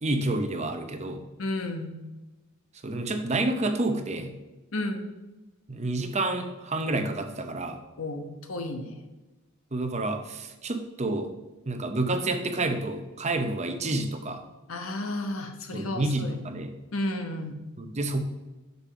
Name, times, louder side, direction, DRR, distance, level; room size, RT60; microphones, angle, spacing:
voice 1, 0.0-1.2 2.8-4.4 5.7-7.8 9.7-11.3 11.7-14.4 15.7-16.7 17.8-18.2, right 2 dB, 30° right, 7 dB, 0.7 m, -29 dB
voice 2, 1.4-2.0 4.7-5.0 8.0-9.0 14.7-16.4 16.9-17.6, left 1 dB, 65° left, 5 dB, 1.0 m, -32 dB
6.7 x 5.3 x 5.6 m, 1.1 s
head